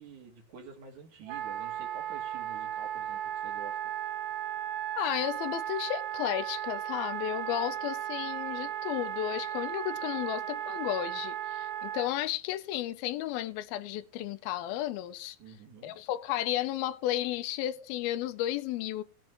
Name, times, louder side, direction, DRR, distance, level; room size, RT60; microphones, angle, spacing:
voice 1, 0.0-3.8 15.4-15.9, right 6 dB, 60° right, 3.3 m, -49 dB
Wind instrument woodwind instrument, 1.3-12.1, right 11 dB, 85° right, 1.6 m, -35 dB
voice 2, 4.9-15.4 15.8-19.0, left 13 dB, 90° left, 2.6 m, -33 dB
19.5 x 7.4 x 3.0 m
omnidirectional pair, 4.2 m